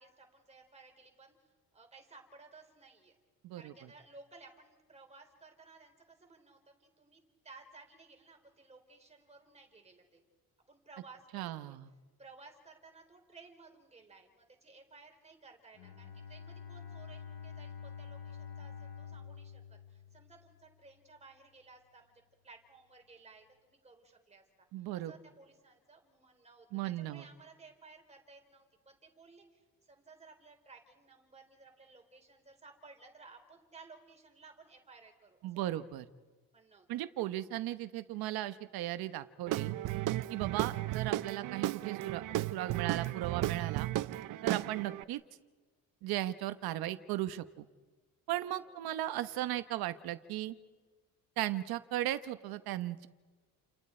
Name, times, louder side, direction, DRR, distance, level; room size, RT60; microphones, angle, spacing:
voice 1, 0.0-3.1 3.5-10.2 10.7-11.8 12.2-22.1 22.4-35.8 36.5-37.1 48.4-48.8, right 4 dB, 20° right, 4 dB, 3.6 m, -57 dB
voice 2, 11.3-11.9 24.7-25.1 26.7-27.2 35.4-36.1 36.9-39.7 40.3-42.2 42.5-43.9 44.4-45.2 46.0-47.7 48.3-50.5 51.4-53.1, right 14 dB, 85° right, 11 dB, 1.0 m, -36 dB
Bowed string instrument, 15.7-20.7, left 7 dB, 75° left, 6.7 m, -47 dB
Guitar / Drum, 39.5-45.0, right 15 dB, 65° right, 0.7 m, -34 dB
30.0 x 29.0 x 4.4 m, 1.4 s
cardioid pair, 160°, 36 cm